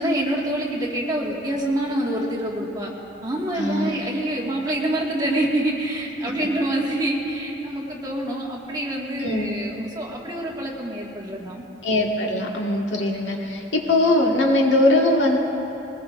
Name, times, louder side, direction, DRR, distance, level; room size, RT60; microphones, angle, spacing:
voice 1, 0.0-2.9 3.2-11.7 13.1-13.3, right 1 dB, 20° right, -3 dB, 1.8 m, -26 dB
voice 2, 3.6-3.9 9.2-9.5 11.8-15.4, left 1 dB, 80° left, 0 dB, 1.7 m, -21 dB
21.0 x 19.0 x 2.6 m, 3.0 s
head